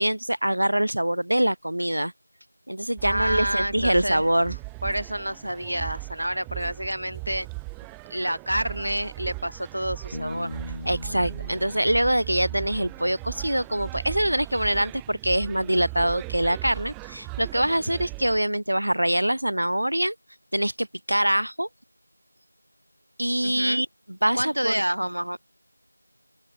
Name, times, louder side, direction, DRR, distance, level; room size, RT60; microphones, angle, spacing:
voice 1, 0.0-2.1 2.7-4.6 10.9-20.2 20.5-21.7 23.2-23.9 24.2-24.8, right 1 dB, 45° right, 3.5 m, -24 dB
sound 1, 3.0-18.4, right 40 dB or more, ahead, 0.4 m, -38 dB
voice 2, 3.0-4.2 4.8-7.5 8.1-10.6 23.4-23.8 24.4-25.4, equal, 70° right, 3.9 m, -28 dB
Bass guitar, 10.1-13.6, left 2 dB, 15° left, 1.8 m, -40 dB
open air
figure-of-eight pair, 180°, 0 cm